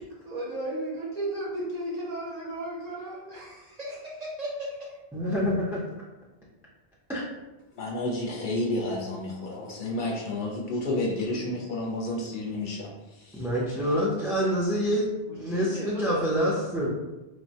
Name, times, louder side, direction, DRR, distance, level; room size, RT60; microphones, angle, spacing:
voice 1, 0.2-4.8 15.3-16.9, right 1 dB, 45° right, -4 dB, 0.6 m, -35 dB
voice 2, 5.1-5.8 7.1-7.2 13.3-15.1 15.4-16.9, equal, 5° right, -6 dB, 0.3 m, -26 dB
voice 3, 7.8-12.9, left 2 dB, 60° left, -3 dB, 0.7 m, -30 dB
3.2 x 2.1 x 2.7 m, 1.0 s
omnidirectional pair, 1.0 m